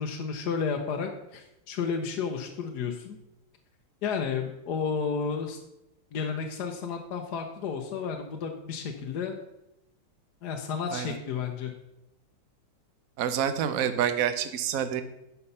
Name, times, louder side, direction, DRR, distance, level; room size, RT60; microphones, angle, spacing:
voice 1, 0.0-3.2 4.0-5.6 6.1-9.4 10.4-11.7, left 6 dB, 60° left, 3 dB, 1.3 m, -32 dB
voice 2, 13.2-15.0, right 9 dB, 60° right, 10 dB, 0.9 m, -27 dB
9.7 x 5.8 x 5.5 m, 0.87 s
omnidirectional pair, 2.3 m